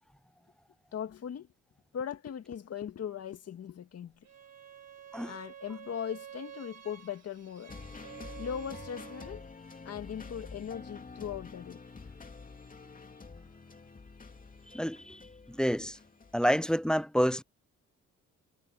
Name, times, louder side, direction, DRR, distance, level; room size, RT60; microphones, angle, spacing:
voice 1, 0.9-1.5 1.9-4.1 5.3-7.7 8.4-9.4 9.9-11.8, left 8 dB, 55° left, 2.0 m, -39 dB
Bowed string instrument, 4.2-9.4, right 9 dB, 60° right, 2.9 m, -49 dB
sound 1, 7.7-16.4, left 4 dB, 25° left, 2.9 m, -48 dB
voice 2, 14.7-15.2 15.5-16.0 16.3-17.4, equal, 5° left, 0.4 m, -28 dB
cardioid pair, 90°, 30 cm